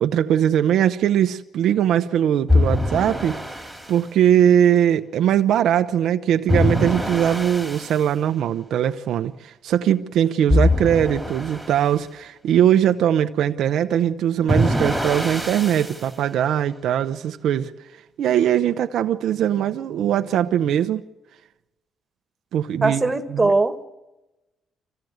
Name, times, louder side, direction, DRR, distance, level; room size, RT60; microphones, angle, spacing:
voice 1, 0.0-3.4 3.9-17.7 18.2-21.0 22.5-23.5, right 10 dB, 75° right, 0.8 m, -20 dB
sound 1, 2.5-3.9 6.5-8.0 10.5-11.9 14.5-16.0, left 1 dB, ahead, 2.7 m, -23 dB
voice 2, 22.8-23.9, right 3 dB, 20° right, 1.8 m, -20 dB
24.5 x 16.0 x 8.0 m
cardioid pair, 90°, 0 cm